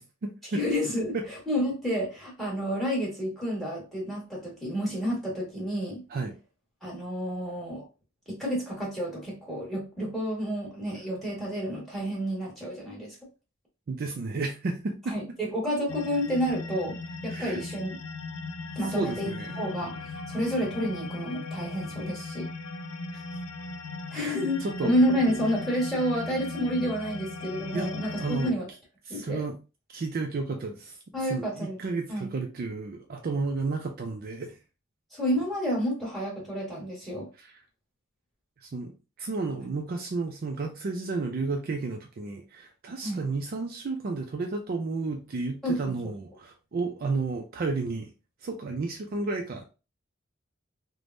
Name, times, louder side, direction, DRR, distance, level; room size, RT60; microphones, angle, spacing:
voice 1, 0.0-0.6 1.1-1.2 6.1-6.3 13.9-15.2 17.3-17.6 18.9-19.6 23.1-23.2 24.1-24.3 24.6-24.9 27.7-27.9 28.2-28.6 29.1-29.5 29.9-31.0 31.3-34.6 37.4-37.5 38.6-38.9 39.2-48.1 48.4-49.6, right 3 dB, 45° right, 3 dB, 0.4 m, -32 dB
voice 2, 0.5-6.0 6.8-7.8 8.3-13.2 15.1-17.0 17.2-18.0 18.7-19.3 19.5-22.5 24.1-28.6 29.1-29.4 31.1-31.8 32.1-32.3 35.1-37.3 39.6-39.7 43.0-43.2 45.6-46.1, equal, ahead, -4 dB, 1.4 m, -30 dB
sound 1, 15.9-28.5, left 3 dB, 85° left, 0.4 m, -38 dB
3.3 x 2.1 x 2.5 m, 0.31 s
head